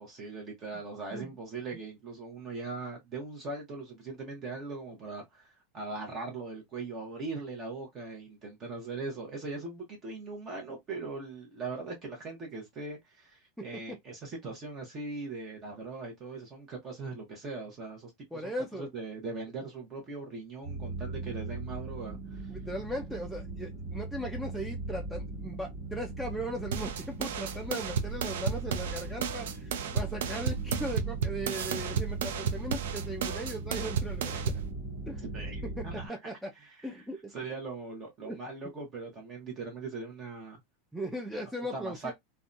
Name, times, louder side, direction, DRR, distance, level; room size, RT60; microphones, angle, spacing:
voice 1, 0.0-22.5 35.3-36.2 36.5-40.6 41.7-42.1, right 3 dB, 30° right, 0.8 m, -40 dB
voice 2, 18.3-18.9 22.5-34.6 35.1-35.2 35.6-36.5 36.8-37.3 38.2-38.4 40.9-42.1, equal, ahead, 0.4 m, -38 dB
sound 1, 20.6-36.1, right 2 dB, 50° right, 1.4 m, -39 dB
sound 2, 26.7-34.7, right 7 dB, 90° right, 0.4 m, -33 dB
2.6 x 2.2 x 2.5 m
supercardioid pair, 145°, 0 cm